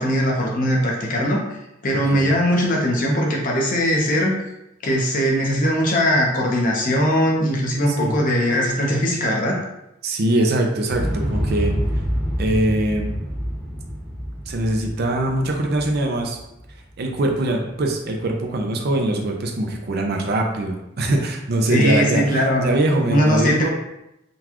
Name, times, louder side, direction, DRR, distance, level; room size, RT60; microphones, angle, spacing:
voice 1, 0.0-1.4 1.8-4.4 4.8-9.6 21.7-22.7 23.1-23.7, equal, 45° left, -2 dB, 0.7 m, -20 dB
voice 2, 10.0-11.8 12.4-13.2 14.5-16.4 17.0-23.7, right 1 dB, 55° right, 2 dB, 0.5 m, -22 dB
Explosion, 10.9-16.9 17.2-17.3, equal, 5° right, 0.9 m, -27 dB
3.8 x 2.3 x 2.9 m, 0.87 s
head